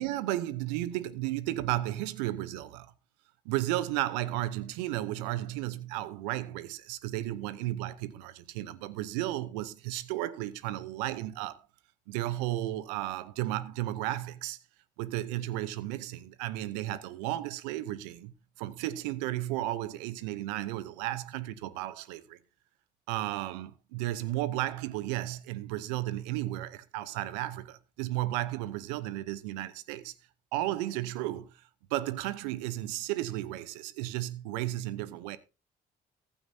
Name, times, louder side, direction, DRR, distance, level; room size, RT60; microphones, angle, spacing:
voice 1, 0.0-2.9 3.4-11.6 12.1-14.6 15.0-22.4 23.1-30.1 30.5-31.5 31.9-35.4, right 15 dB, 85° right, 0.8 m, -34 dB
15.0 x 11.5 x 2.7 m
hypercardioid pair, 45°, 21 cm